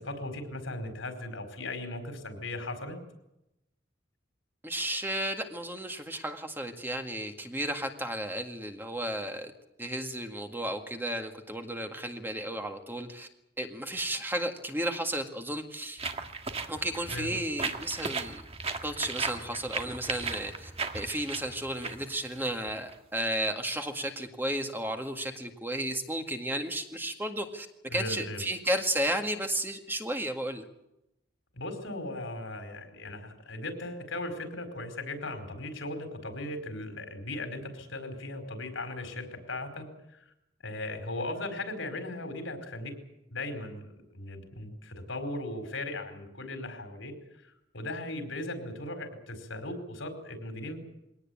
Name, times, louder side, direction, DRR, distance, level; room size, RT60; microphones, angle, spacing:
voice 1, 0.0-3.0 17.1-17.3 27.9-28.4 31.5-39.9 40.6-42.9 43.3-47.1 47.7-50.8, left 2 dB, 85° left, 6 dB, 4.7 m, -37 dB
voice 2, 4.6-9.5 9.8-13.3 13.6-16.0 16.7-18.4 18.8-27.7 27.9-30.7, right 1 dB, 10° right, 4 dB, 1.9 m, -33 dB
sound 1, 16.0-23.0, right 4 dB, 30° right, 1.6 m, -36 dB
22.5 x 18.0 x 8.7 m, 0.87 s
head